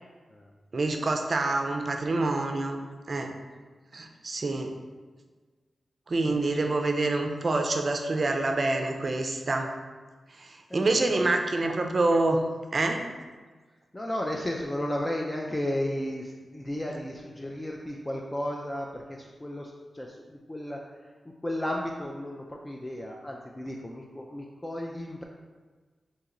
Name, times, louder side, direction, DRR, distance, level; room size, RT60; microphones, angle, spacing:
voice 1, 0.7-2.8 3.1-3.3 3.9-4.7 6.1-9.7 10.4-12.4 12.7-13.0, right 2 dB, 55° right, 4 dB, 0.4 m, -26 dB
voice 2, 6.2-6.8 10.7-11.3 11.6-11.7 13.9-25.2, left 1 dB, 20° left, -1 dB, 0.4 m, -34 dB
2.9 x 2.9 x 3.7 m, 1.4 s
cardioid pair, 55°, 0 cm